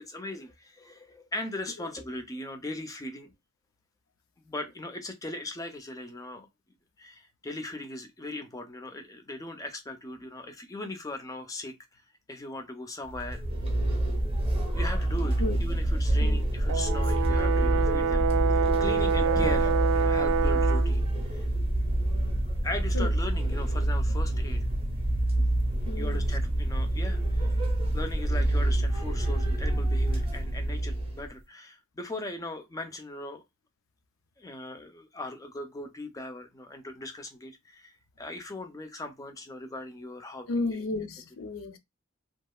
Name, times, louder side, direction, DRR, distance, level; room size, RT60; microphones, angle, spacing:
voice 1, 0.0-3.3 4.4-6.5 7.0-12.0 12.3-13.4 14.7-21.5 22.6-24.7 26.0-27.5 27.9-33.4 34.4-40.9, left 2 dB, 15° left, 0.4 m, -39 dB
sound 1, 13.1-31.3, right 1 dB, 25° right, 0.6 m, -27 dB
Brass instrument, 16.7-20.9, right 6 dB, 75° right, 0.4 m, -26 dB
voice 2, 25.8-26.3 40.5-41.8, left 2 dB, 75° left, 0.5 m, -33 dB
2.8 x 2.4 x 2.2 m
head